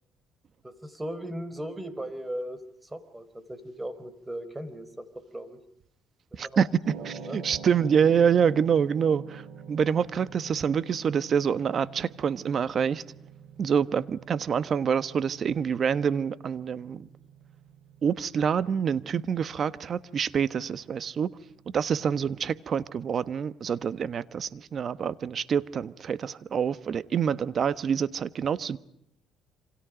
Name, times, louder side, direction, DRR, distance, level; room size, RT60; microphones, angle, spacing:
voice 1, 0.6-5.1 5.3-5.6 6.3-6.7 7.2-7.4, right 1 dB, 10° right, 4.3 m, -37 dB
voice 2, 6.4-6.7 7.0-9.4 9.7-13.0 13.6-17.1 18.0-21.3 21.7-28.8, right 7 dB, 45° right, 1.2 m, -26 dB
sound 1, 6.8-25.1, right 6 dB, 75° right, 6.8 m, -48 dB
28.0 x 26.5 x 5.1 m
cardioid pair, 90°, 0 cm